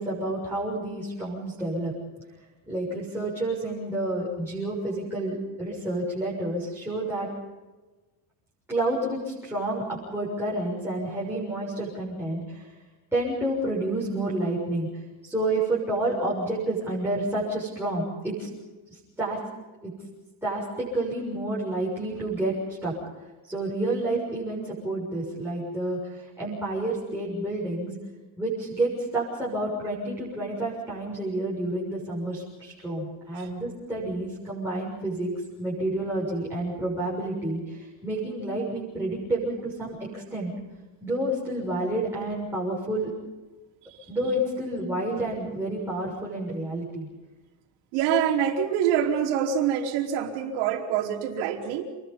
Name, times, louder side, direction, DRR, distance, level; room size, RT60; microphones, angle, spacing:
voice 1, 0.0-1.9 2.7-7.3 8.7-12.7 13.1-18.5 18.9-19.4 19.8-19.9 20.4-22.9 23.2-27.9 28.4-35.3 35.6-40.5 41.0-43.1 44.1-47.1, right 1 dB, 5° right, -7 dB, 6.7 m, -29 dB
voice 2, 47.9-51.8, right 8 dB, 75° right, 2 dB, 4.6 m, -25 dB
29.0 x 21.0 x 5.6 m, 1.2 s
cardioid pair, 175°, 49 cm